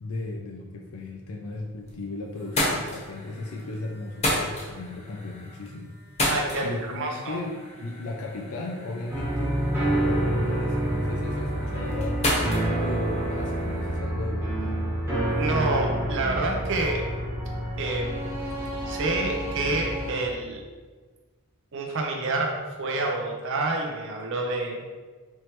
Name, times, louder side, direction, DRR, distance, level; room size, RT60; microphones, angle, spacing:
voice 1, 0.0-6.0 6.6-12.3 12.6-14.8, left 2 dB, 80° left, 1 dB, 0.4 m, -35 dB
sound 1, 1.5-2.0 2.3-14.0, left 1 dB, 30° left, 0.9 m, -33 dB
voice 2, 6.3-6.7 6.9-7.4 15.3-17.0 17.8-18.3 18.9-20.6 21.7-22.5 22.8-24.8, right 2 dB, 55° right, 0 dB, 0.5 m, -28 dB
sound 2, 9.1-20.1, right 1 dB, 10° right, 1.0 m, -28 dB
4.4 x 3.2 x 3.0 m, 1.4 s
head